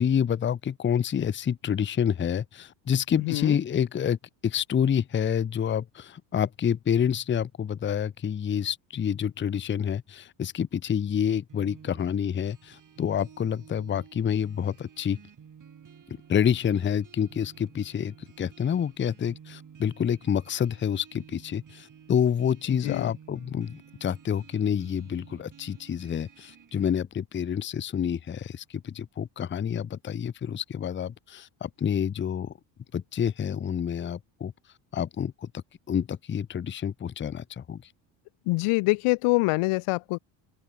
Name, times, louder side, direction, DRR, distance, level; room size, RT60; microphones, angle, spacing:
voice 1, 0.0-15.2 16.3-32.5 32.9-34.5 34.9-35.5 35.9-37.8, left 8 dB, 25° left, 0.7 m, -28 dB
voice 2, 3.2-3.5 22.8-23.1 38.5-40.2, left 24 dB, 80° left, 1.6 m, -25 dB
sound 1, 11.5-26.9, right 7 dB, 40° right, 6.5 m, -52 dB
open air
cardioid pair, 105°, 49 cm